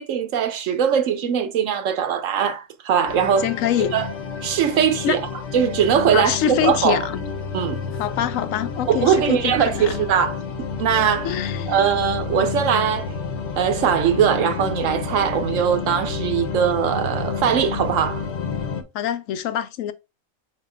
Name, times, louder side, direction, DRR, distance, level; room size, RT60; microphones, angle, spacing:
voice 1, 0.0-3.5 3.9-4.1 4.4-5.2 5.5-7.1 7.5-7.8 8.9-11.4 11.7-13.1 13.6-18.3, right 8 dB, 70° right, 1.0 m, -21 dB
sound 1, 3.1-18.8, left 5 dB, 60° left, 1.0 m, -30 dB
voice 2, 3.4-4.0 5.0-5.2 6.1-7.3 8.0-10.1 11.2-11.8 18.9-19.9, left 10 dB, 80° left, 1.0 m, -25 dB
5.3 x 4.1 x 2.4 m
omnidirectional pair, 1.4 m